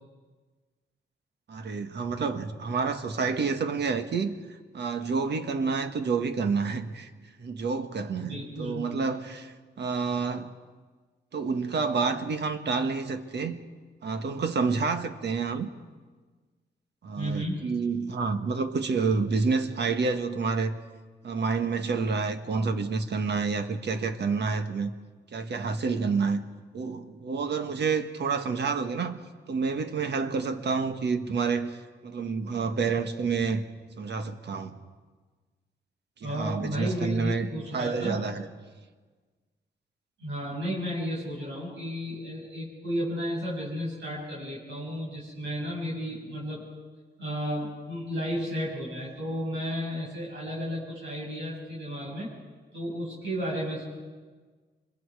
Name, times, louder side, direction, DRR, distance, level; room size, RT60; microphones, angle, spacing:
voice 1, 1.5-4.4 4.7-7.1 7.4-10.5 11.3-13.6 14.0-15.7 17.0-20.8 21.2-24.9 25.3-26.4 26.7-29.2 29.5-31.7 32.0-33.6 34.0-34.8 36.2-38.5, right 4 dB, 65° right, 8 dB, 1.5 m, -28 dB
voice 2, 8.2-8.8 17.1-17.6 36.2-38.2 40.2-46.7 47.2-52.3 52.7-53.8, equal, 85° right, -5 dB, 6.2 m, -33 dB
26.0 x 22.5 x 4.8 m, 1.4 s
cardioid pair, 90°, 19 cm